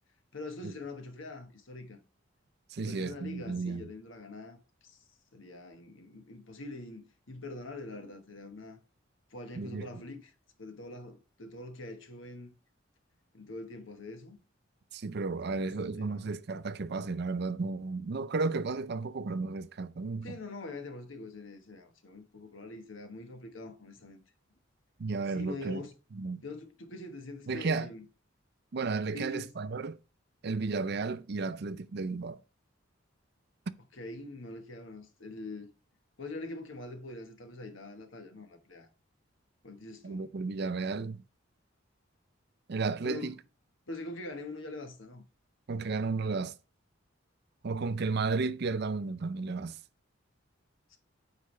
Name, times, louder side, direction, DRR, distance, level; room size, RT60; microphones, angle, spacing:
voice 1, 0.3-2.0 2.7-5.0 5.3-8.8 9.3-12.6 13.3-14.4 15.4-16.3 20.2-24.2 25.3-25.9 26.4-28.0 29.1-29.5 33.9-35.7 36.2-38.9 39.6-40.2 43.0-43.4 43.9-45.2 50.9-51.0, left 2 dB, 80° left, 1.3 m, -44 dB
voice 2, 2.7-3.9 9.6-9.9 14.9-20.4 25.0-25.8 26.1-26.4 27.5-27.9 28.7-30.0 30.4-32.4 40.0-41.2 42.7-43.3 45.7-46.5 47.6-49.8, right 4 dB, 55° right, 0.5 m, -33 dB
8.4 x 4.9 x 3.2 m
head